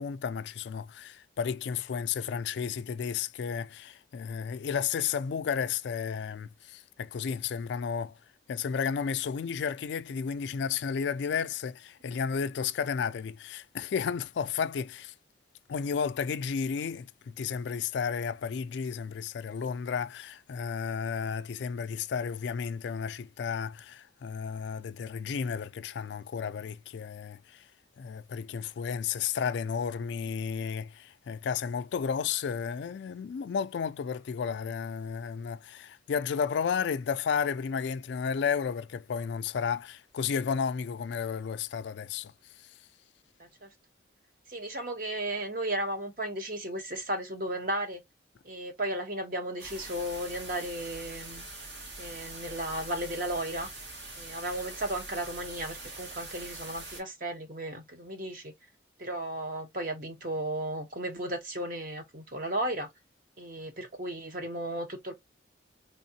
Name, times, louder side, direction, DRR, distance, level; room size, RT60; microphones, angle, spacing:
voice 1, 0.0-8.2 8.5-15.1 15.7-27.7 28.0-42.3, left 6 dB, 65° left, 0.3 m, -32 dB
voice 2, 44.5-48.0 48.4-51.4 52.0-53.7 54.2-58.5 59.0-62.9 63.4-65.1, right 1 dB, 45° right, 1.1 m, -35 dB
sound 1, 49.6-57.0, right 2 dB, 65° right, 1.9 m, -43 dB
3.6 x 3.4 x 2.7 m
head